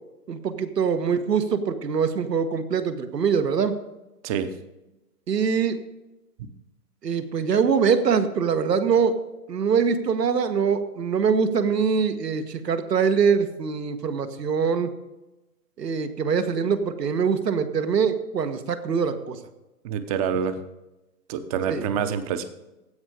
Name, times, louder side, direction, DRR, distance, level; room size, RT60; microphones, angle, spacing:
voice 1, 0.3-3.8 5.3-5.8 7.0-9.2 9.5-14.9 15.8-19.4 21.7-21.8, right 6 dB, 90° right, 9 dB, 1.4 m, -23 dB
voice 2, 19.8-20.6 21.3-22.4, right 7 dB, 25° right, 10 dB, 0.7 m, -26 dB
16.0 x 5.5 x 4.9 m, 0.99 s
hypercardioid pair, 140°, 48 cm